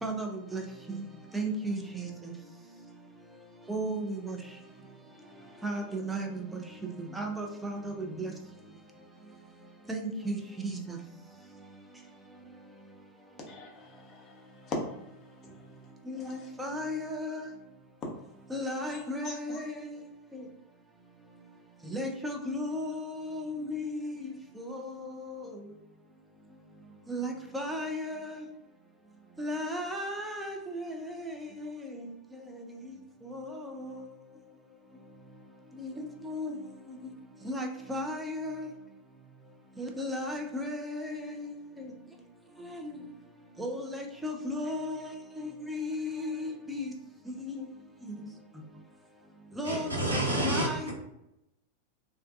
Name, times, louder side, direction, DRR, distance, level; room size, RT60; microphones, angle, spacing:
voice 1, 1.3-2.1 3.7-4.4 5.6-6.4 7.2-8.3 9.9-10.8 16.1-17.4 18.5-19.7 21.9-24.3 24.6-24.8 27.1-28.4 29.4-31.3 33.3-33.5 33.8-33.9 35.8-35.9 36.2-36.6 37.5-38.7 39.8-41.5 42.8-42.9 43.6-45.1 45.4-46.9 47.4-47.6 49.6-50.0 50.5-50.9, equal, 10° right, 0.5 m, -34 dB
voice 2, 13.5-15.0 15.5-15.6 16.2-16.5 18.0-18.1 18.9-19.6, left 2 dB, 30° left, 0.7 m, -40 dB
voice 3, 49.6-50.9, right 1 dB, 85° right, 0.7 m, -29 dB
2.3 x 2.2 x 2.4 m
figure-of-eight pair, 90°, 0 cm